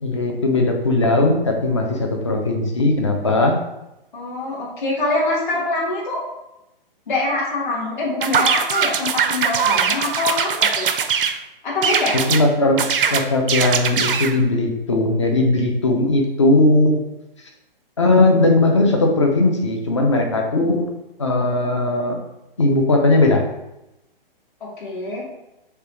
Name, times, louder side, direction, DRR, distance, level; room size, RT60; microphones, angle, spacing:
voice 1, 0.0-3.6 12.3-12.8 13.1-17.0 18.0-20.8 21.2-22.2 22.6-23.4, left 2 dB, 30° left, 2 dB, 0.5 m, -18 dB
voice 2, 4.1-6.2 7.1-10.9 11.6-12.2 24.6-25.2, left 2 dB, 55° left, -4 dB, 1.2 m, -24 dB
sound 1, 8.2-11.4 11.8-12.4 12.8-14.4, right 7 dB, 65° right, 0.5 m, -21 dB
6.5 x 2.2 x 3.0 m, 0.91 s
hypercardioid pair, 180°, 29 cm